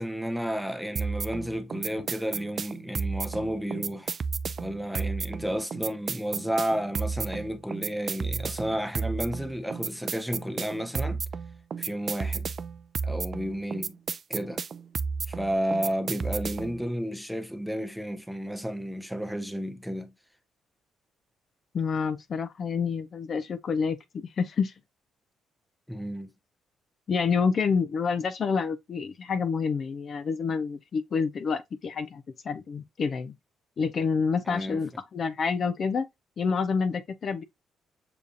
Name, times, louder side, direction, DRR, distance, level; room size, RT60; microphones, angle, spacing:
voice 1, 0.0-4.2 4.6-11.2 11.8-12.5 13.0-14.0 14.3-14.6 15.3-20.1 25.9-26.3 34.4-34.8, equal, ahead, 0.7 m, -32 dB
sound 1, 1.0-16.8, right 5 dB, 45° right, 0.3 m, -33 dB
voice 2, 21.7-24.7 27.1-33.3 33.8-36.1 36.4-37.4, left 5 dB, 50° left, 0.5 m, -28 dB
6.8 x 2.4 x 2.5 m
cardioid pair, 90°, 0 cm